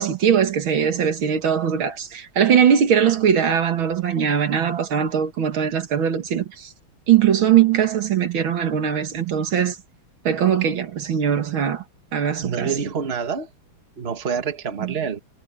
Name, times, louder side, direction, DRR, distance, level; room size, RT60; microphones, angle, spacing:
voice 1, 0.0-6.7 7.1-9.8 10.2-11.8 12.1-12.7 14.8-14.9, right 8 dB, 75° right, 2.4 m, -20 dB
voice 2, 12.4-13.5 14.0-15.2, right 6 dB, 30° right, 1.8 m, -27 dB
omnidirectional pair, 2.3 m